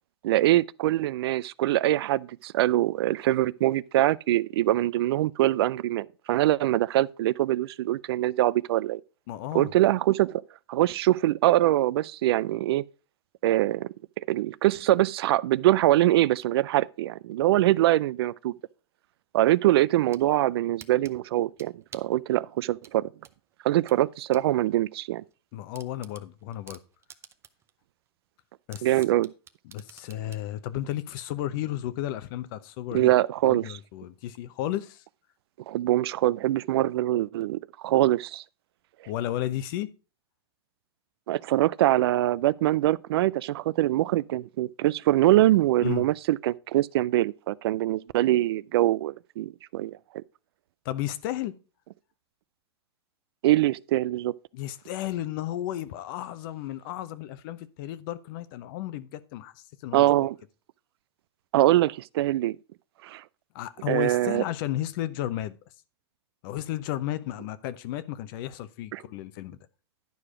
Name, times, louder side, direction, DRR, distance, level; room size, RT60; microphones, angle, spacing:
voice 1, 0.2-9.0 9.5-10.4 10.7-12.8 13.4-13.9 14.2-18.5 19.3-23.1 23.6-25.2 28.8-29.3 32.9-33.8 35.7-38.4 41.3-50.2 53.4-54.3 59.9-60.3 61.5-62.6 63.0-63.2 63.9-64.4 68.9-69.0, right 15 dB, 70° right, 0.4 m, -23 dB
voice 2, 9.3-9.7 25.5-26.8 28.7-28.9 29.6-33.1 33.5-35.0 39.1-39.9 45.8-46.1 50.8-51.5 54.5-60.3 63.5-65.6 66.4-69.6, left 13 dB, 55° left, 0.8 m, -33 dB
sound 1, 19.8-20.3 20.8-22.2 22.8-24.5 24.8-24.9 25.3-25.4 25.7-27.7 28.1-28.2 28.7-30.5, right 8 dB, 20° right, 0.6 m, -49 dB
10.5 x 4.9 x 4.9 m
hypercardioid pair, 125°, 14 cm